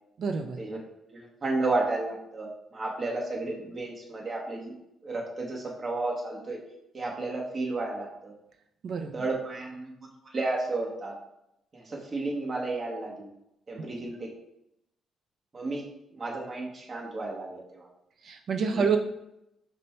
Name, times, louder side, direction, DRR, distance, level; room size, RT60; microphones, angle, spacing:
voice 1, 0.2-0.6 8.8-9.1 18.2-19.0, right 5 dB, 60° right, 6 dB, 0.4 m, -27 dB
voice 2, 1.1-4.8 5.0-6.6 6.9-8.3 9.1-9.9 10.2-11.1 11.7-13.3 13.7-14.3 15.5-15.8 16.1-17.9 18.7-18.9, right 2 dB, 35° right, -2 dB, 1.0 m, -32 dB
5.2 x 2.2 x 4.3 m, 0.83 s
cardioid pair, 90°, 0 cm